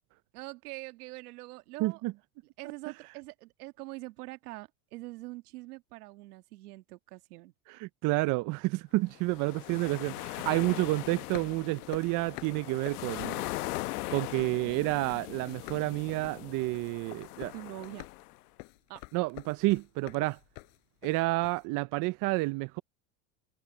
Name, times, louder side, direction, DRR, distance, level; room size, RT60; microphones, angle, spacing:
voice 1, 0.3-2.0 2.6-7.5 17.5-18.1 18.9-19.1, right 21 dB, 80° right, 1.8 m, -44 dB
voice 2, 1.8-2.1 7.7-13.4 14.1-17.5 19.1-20.4 21.0-22.8, right 22 dB, 45° right, 0.5 m, -30 dB
sound 1, 9.1-18.4, left 19 dB, 90° left, 0.9 m, -40 dB
sound 2, 11.2-15.2 15.5-21.6, left 40 dB or more, 65° left, 5.1 m, -48 dB
supercardioid pair, 120°, 45 cm